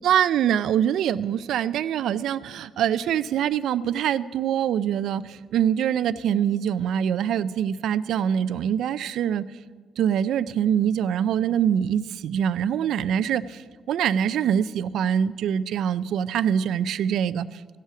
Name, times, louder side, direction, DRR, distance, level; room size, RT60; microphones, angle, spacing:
voice 1, 0.0-9.4 10.0-13.6 13.9-17.8, right 9 dB, 70° right, 16 dB, 0.3 m, -24 dB
16.5 x 5.6 x 5.9 m, 1.5 s
cardioid pair, 160°, 0 cm